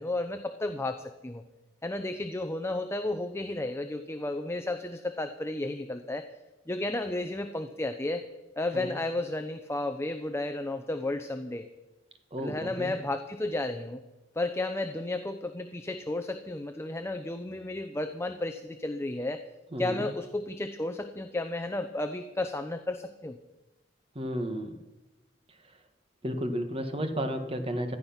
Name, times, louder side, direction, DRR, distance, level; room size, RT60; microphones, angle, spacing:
voice 1, 0.0-1.4 1.8-6.3 6.7-8.2 8.6-11.7 12.4-14.0 14.4-19.4 19.8-23.4, left 2 dB, 15° left, 8 dB, 0.7 m, -33 dB
voice 2, 12.3-12.9 19.7-20.1 24.1-24.7 26.2-28.0, equal, 30° right, 7 dB, 1.4 m, -32 dB
15.5 x 12.5 x 5.9 m, 1.1 s
head